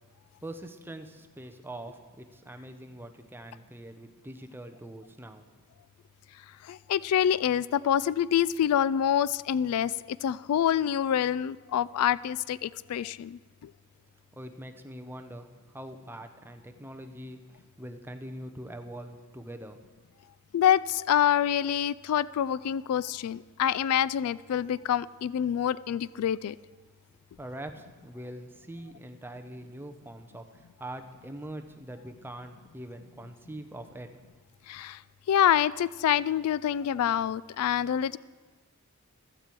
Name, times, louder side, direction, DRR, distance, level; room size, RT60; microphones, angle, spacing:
voice 1, 0.4-5.5 14.3-19.8 27.4-34.1, right 1 dB, 10° right, 6 dB, 0.7 m, -43 dB
voice 2, 6.7-13.7 20.5-26.5 34.7-35.0 35.3-38.2, left 9 dB, 75° left, 18 dB, 0.3 m, -26 dB
15.5 x 13.0 x 4.6 m, 1.4 s
head